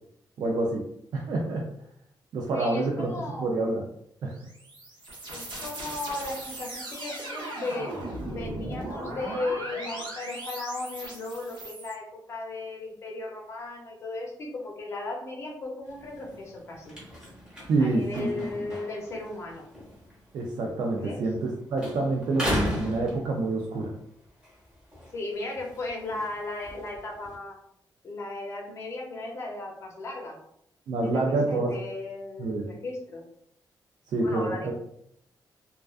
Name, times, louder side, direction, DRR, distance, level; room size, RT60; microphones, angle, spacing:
voice 1, 0.4-0.9 1.1-1.7 2.3-3.1 3.4-3.9 4.2-4.3 17.7-18.5 20.3-23.9 30.9-31.7 32.4-32.7 34.1-34.7, right 2 dB, 65° right, -1 dB, 0.3 m, -27 dB
voice 2, 2.5-3.6 5.3-7.9 8.3-12.0 12.3-16.9 17.8-19.7 21.0-21.2 25.1-27.6 28.0-30.4 31.0-33.2 34.2-34.7, left 2 dB, 40° left, -1 dB, 0.6 m, -36 dB
sound 1, 4.3-11.9, right 1 dB, 90° right, 0.8 m, -38 dB
sound 2, 15.9-21.5 21.8-23.8 24.3-27.3, left 1 dB, 10° right, 0.8 m, -37 dB
2.3 x 2.3 x 2.4 m, 0.72 s
wide cardioid pair, 175°, 8 cm